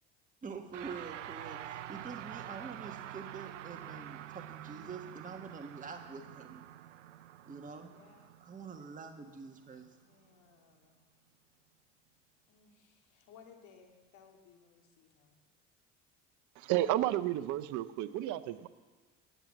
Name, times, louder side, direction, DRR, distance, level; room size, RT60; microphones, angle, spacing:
voice 1, 0.4-6.7 7.5-7.9 8.4-9.9, right 5 dB, 20° right, 4 dB, 1.4 m, -46 dB
sound 1, 0.7-10.2, right 12 dB, 90° right, 0.6 m, -47 dB
voice 2, 7.9-8.3 10.0-11.0 12.5-15.4, left 6 dB, 55° left, 2 dB, 2.9 m, -61 dB
voice 3, 16.6-18.7, right 14 dB, 55° right, 13 dB, 0.8 m, -32 dB
18.0 x 8.1 x 7.4 m, 1.3 s
hypercardioid pair, 75°, 36 cm